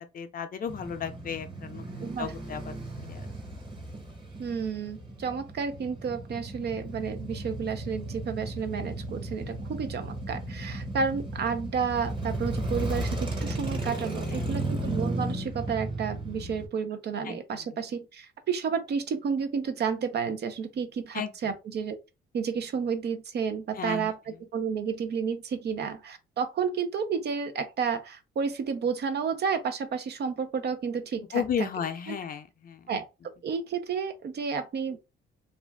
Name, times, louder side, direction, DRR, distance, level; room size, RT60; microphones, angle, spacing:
voice 1, 0.1-2.8 3.1-3.3 14.3-14.5 17.2-17.7 21.1-21.3 23.8-24.1 31.3-32.8, left 8 dB, 45° left, 0.5 m, -34 dB
Male speech man speaking / Motorcycle / Idling, 0.7-16.7, right 1 dB, 25° right, 1.0 m, -35 dB
voice 2, 2.0-2.3 4.4-22.0 22.3-31.7 32.1-32.2 32.9-35.0, right 6 dB, 55° right, 0.6 m, -31 dB
2.5 x 2.2 x 3.3 m
cardioid pair, 90°, 20 cm